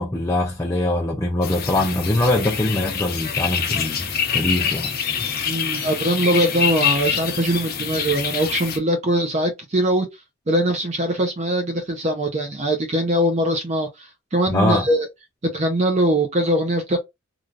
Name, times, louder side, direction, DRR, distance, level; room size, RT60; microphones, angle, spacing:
voice 1, 0.0-4.9 5.2-5.3 14.5-14.9, left 1 dB, 15° left, 0.5 m, -22 dB
sound 1, 1.4-8.8, left 7 dB, 45° left, 0.7 m, -25 dB
voice 2, 5.4-10.1 10.5-15.1 15.4-17.0, right 1 dB, 35° right, 0.5 m, -22 dB
3.2 x 2.4 x 2.4 m
head